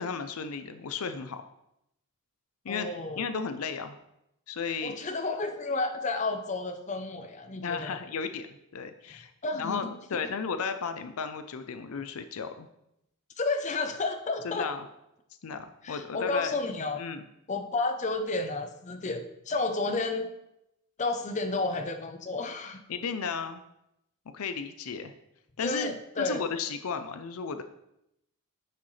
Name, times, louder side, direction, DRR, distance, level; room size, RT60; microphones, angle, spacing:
voice 1, 0.0-1.4 2.6-2.9 3.1-4.0 4.5-5.0 7.6-8.5 8.7-9.3 9.6-12.7 14.4-14.8 15.4-16.6 17.0-17.2 22.9-23.6 24.3-25.1 25.6-27.6, left 5 dB, 75° left, 9 dB, 0.5 m, -34 dB
voice 2, 2.7-3.3 4.8-8.0 9.4-9.9 10.2-10.3 13.4-14.7 15.8-17.0 17.5-20.3 21.0-22.8 25.6-26.4, left 3 dB, 35° left, 6 dB, 0.7 m, -31 dB
9.6 x 6.2 x 3.2 m, 0.83 s
head